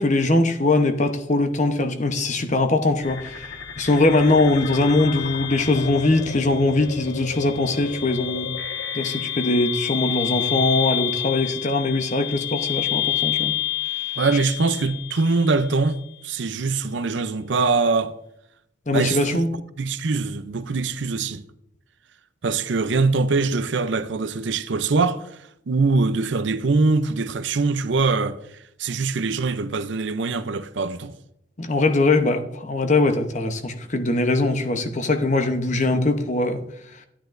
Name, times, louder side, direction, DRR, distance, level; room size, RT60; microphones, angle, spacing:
voice 1, 0.0-3.5 3.8-8.5 8.9-13.5 18.9-19.5 31.6-36.6, left 2 dB, 40° left, 0.8 m, -21 dB
sound 1, 3.0-16.0, left 11 dB, 70° left, 1.5 m, -29 dB
voice 2, 14.2-18.1 18.9-19.4 19.8-21.4 22.4-25.4 25.7-31.1, right 3 dB, 65° right, 0.6 m, -23 dB
11.5 x 10.0 x 2.6 m
head